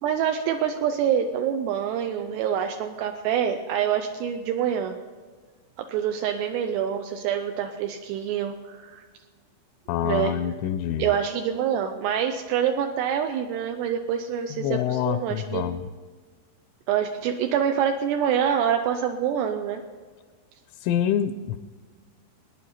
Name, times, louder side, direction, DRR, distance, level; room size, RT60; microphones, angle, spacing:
voice 1, 0.0-4.9 5.9-9.0 10.0-10.4 11.0-15.6 16.9-19.8, right 8 dB, 85° right, 5 dB, 2.5 m, -26 dB
voice 2, 9.9-11.1 14.5-15.9 20.8-21.6, left 10 dB, 85° left, 9 dB, 2.9 m, -26 dB
22.5 x 9.8 x 4.2 m, 1.5 s
omnidirectional pair, 5.5 m